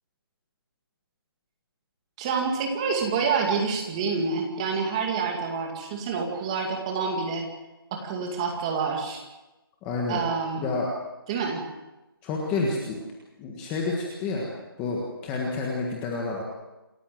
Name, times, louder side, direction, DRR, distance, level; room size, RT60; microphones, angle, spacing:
voice 1, 2.2-7.5 7.9-9.2 10.1-10.7 11.3-11.7, right 5 dB, 15° right, 2 dB, 2.3 m, -27 dB
voice 2, 9.8-10.2 10.6-10.9 12.2-13.0 13.4-14.5 14.8-16.4, left 3 dB, 10° left, -2 dB, 1.6 m, -29 dB
28.0 x 14.0 x 7.8 m, 1.0 s
hypercardioid pair, 175°, 13 cm